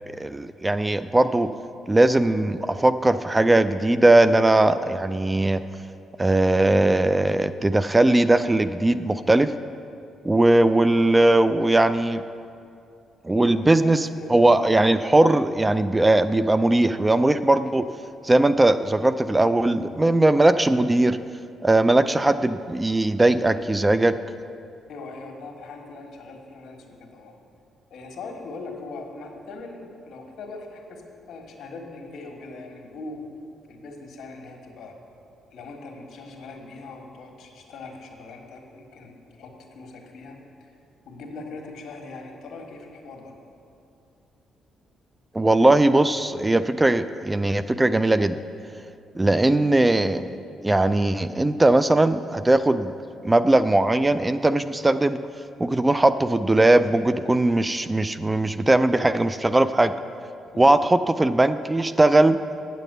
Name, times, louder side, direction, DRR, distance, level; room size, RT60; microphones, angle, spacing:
voice 1, 0.2-1.5 1.9-5.6 6.2-9.5 10.2-12.2 13.2-17.9 18.2-21.2 21.6-24.2 45.3-48.4 49.2-50.3 50.6-52.9 53.2-55.2 55.6-59.9 60.6-62.4, right 2 dB, 15° right, 12 dB, 0.3 m, -19 dB
voice 2, 13.3-14.4 24.9-27.3 27.9-33.2 33.7-34.9 35.5-40.8 41.1-43.3 60.5-60.8, left 3 dB, 70° left, 2 dB, 1.5 m, -41 dB
8.9 x 7.4 x 6.6 m, 2.5 s
cardioid pair, 90°, 0 cm